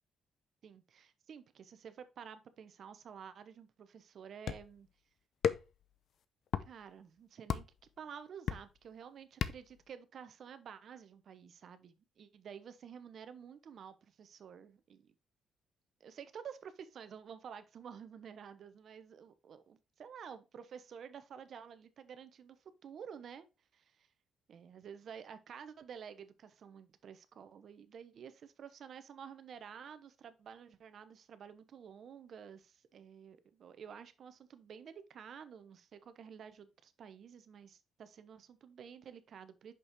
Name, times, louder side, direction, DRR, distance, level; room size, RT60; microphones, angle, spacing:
voice 1, 0.6-4.9 6.7-7.7 8.0-15.1 16.0-22.6 22.8-23.5 23.7-24.1 24.5-39.7, right 7 dB, 60° right, 0.9 m, -51 dB
sound 1, 4.5-4.8 5.4-5.8 6.5-6.7 7.5-7.8 8.5-8.8 9.4-9.8, left 8 dB, 65° left, 0.6 m, -34 dB
6.2 x 5.4 x 3.5 m
cardioid pair, 90°, 0 cm